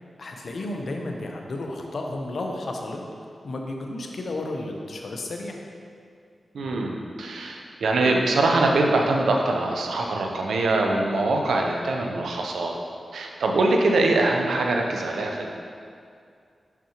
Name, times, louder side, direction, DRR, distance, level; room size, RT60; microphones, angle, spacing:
voice 1, 0.2-5.6, left 2 dB, 70° left, 2 dB, 0.7 m, -33 dB
voice 2, 6.5-12.8 13.1-15.5, right 2 dB, 90° right, 1 dB, 0.6 m, -23 dB
5.8 x 5.8 x 2.9 m, 2.3 s
cardioid pair, 45°, 0 cm